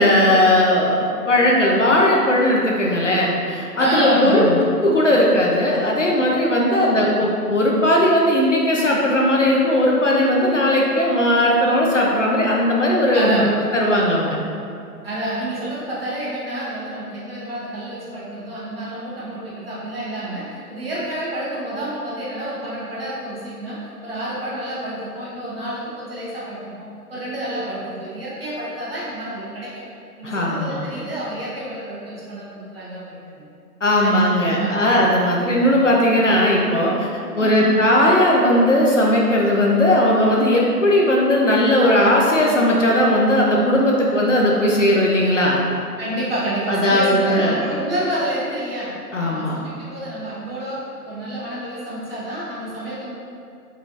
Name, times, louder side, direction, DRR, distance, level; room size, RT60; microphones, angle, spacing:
voice 1, 0.0-14.4 30.2-30.8 33.8-37.1 37.4-45.6 46.7-47.6 49.1-49.7, left 1 dB, 55° left, -3 dB, 0.5 m, -17 dB
voice 2, 3.8-4.5 6.7-7.0 13.1-13.5 15.0-29.8 30.2-33.4 34.0-34.2 34.6-35.0 37.4-37.8 46.0-53.1, right 1 dB, 40° right, -8 dB, 1.0 m, -28 dB
3.7 x 3.4 x 2.5 m, 2.5 s
figure-of-eight pair, 150°, 47 cm